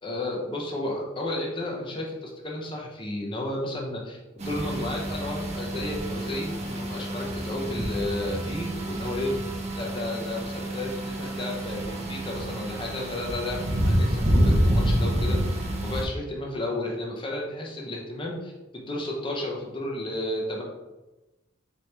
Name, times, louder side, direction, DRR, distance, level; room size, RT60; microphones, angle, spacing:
voice 1, 0.0-4.2 4.4-9.3 9.8-15.4 15.8-20.6, left 1 dB, 25° left, -1 dB, 0.6 m, -32 dB
sound 1, 4.4-16.1, right 1 dB, 30° right, 0.6 m, -28 dB
4.3 x 3.0 x 3.2 m, 1.1 s
head